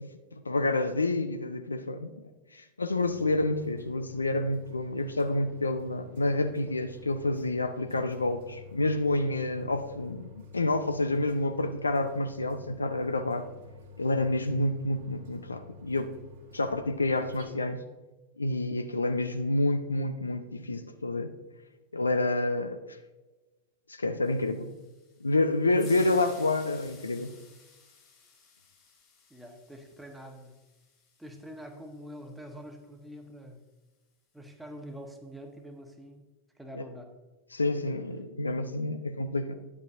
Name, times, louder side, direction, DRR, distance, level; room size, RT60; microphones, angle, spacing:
voice 1, 0.0-13.5 14.0-16.1 16.5-17.8 18.4-21.3 21.9-23.0 23.9-24.7 25.2-27.3 36.7-36.8 37.5-39.5, left 2 dB, 80° left, 9 dB, 0.5 m, -29 dB
sound 1, 3.0-17.5, left 3 dB, 55° right, 1.5 m, -50 dB
sound 2, 24.2-32.5, left 5 dB, 30° left, 2.4 m, -55 dB
voice 2, 25.6-26.6 29.3-30.5 31.2-33.6 34.3-36.3 36.5-37.1, equal, 5° right, 3 dB, 1.1 m, -45 dB
10.5 x 8.1 x 2.6 m, 1.1 s
figure-of-eight pair, 90°, 0 cm